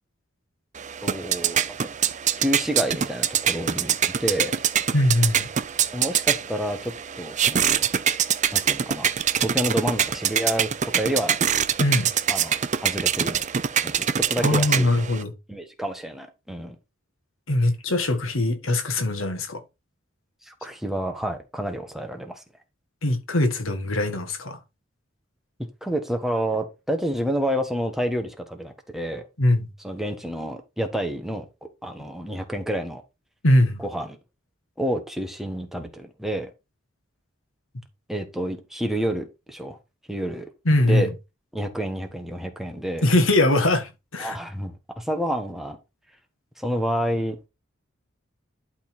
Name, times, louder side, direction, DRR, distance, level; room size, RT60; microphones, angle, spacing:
sound 1, 0.8-15.2, right 8 dB, 35° right, 0.6 m, -24 dB
voice 1, 1.0-1.9 2.4-4.5 5.9-7.9 8.5-9.1 9.4-11.4 12.3-13.4 13.8-14.9 15.5-16.7 20.5-22.4 25.8-29.2 29.8-31.5 31.8-33.0 33.8-34.2 34.8-36.5 38.1-39.8 40.1-40.5 40.9-41.1 41.5-43.0 44.2-45.8 46.6-47.5, right 1 dB, ahead, 1.4 m, -29 dB
voice 2, 4.9-5.5 11.8-12.1 14.4-15.3 17.5-19.6 23.0-24.6 29.4-29.7 33.4-33.8 40.6-41.1 43.0-44.4, left 1 dB, 85° left, 1.6 m, -21 dB
11.5 x 3.9 x 4.4 m
head